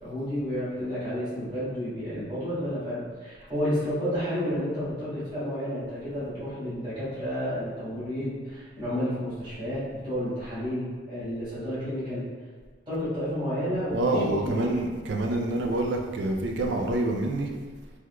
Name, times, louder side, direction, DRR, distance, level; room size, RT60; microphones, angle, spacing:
voice 1, 0.0-12.2 12.9-14.6, equal, 25° right, -14 dB, 1.5 m, -31 dB
voice 2, 13.9-17.5, right 2 dB, 60° right, 2 dB, 0.4 m, -27 dB
3.5 x 3.0 x 2.2 m, 1.4 s
head